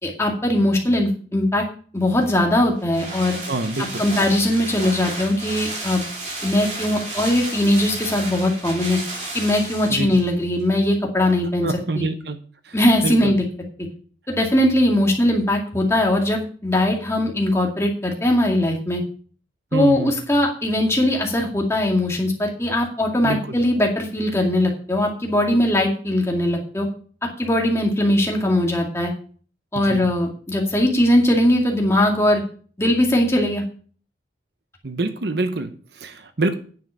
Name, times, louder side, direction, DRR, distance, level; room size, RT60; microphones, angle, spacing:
voice 1, 0.0-1.6 1.9-3.4 4.0-6.0 6.4-9.0 9.3-11.7 11.9-12.1 12.7-13.4 14.3-19.0 19.7-26.9 27.4-29.1 29.7-32.4 32.8-33.6, left 1 dB, 15° left, 0 dB, 2.2 m, -20 dB
sound 1, 2.1-10.3 10.6-10.7, right 2 dB, 40° right, 3.1 m, -32 dB
voice 2, 3.5-4.0 9.9-10.1 11.6-12.4 12.7-12.8 13.0-13.3 19.7-20.2 23.2-23.4 29.7-30.0 34.8-36.5, right 2 dB, 65° right, 9 dB, 0.9 m, -26 dB
9.6 x 7.4 x 5.5 m, 0.43 s
head